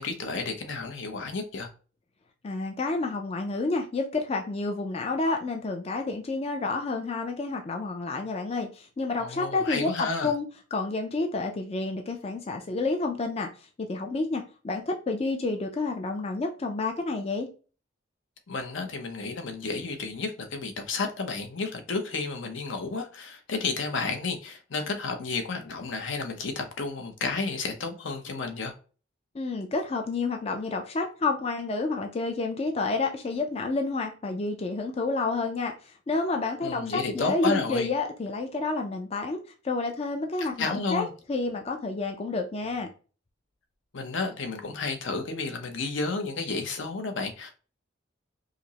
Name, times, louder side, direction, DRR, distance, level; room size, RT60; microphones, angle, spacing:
voice 1, 0.0-1.7 9.2-10.3 18.5-28.7 36.6-37.9 40.4-41.1 43.9-47.5, left 3 dB, 70° left, 0.7 m, -32 dB
voice 2, 2.4-10.4 10.7-13.5 13.8-17.5 29.3-35.7 36.1-39.4 39.6-42.9, left 3 dB, 30° left, 0.4 m, -29 dB
4.9 x 2.0 x 2.8 m
head